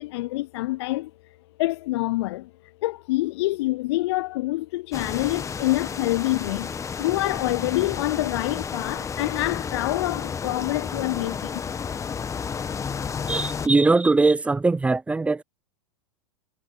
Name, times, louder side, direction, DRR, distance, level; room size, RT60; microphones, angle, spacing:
voice 1, 0.0-6.7 7.0-11.6, left 19 dB, 60° left, 0.4 m, -26 dB
sound 1, 4.9-13.7, left 6 dB, 20° left, 1.5 m, -32 dB
voice 2, 13.3-15.4, right 3 dB, 10° right, 0.4 m, -20 dB
hypercardioid pair, 95°, 16 cm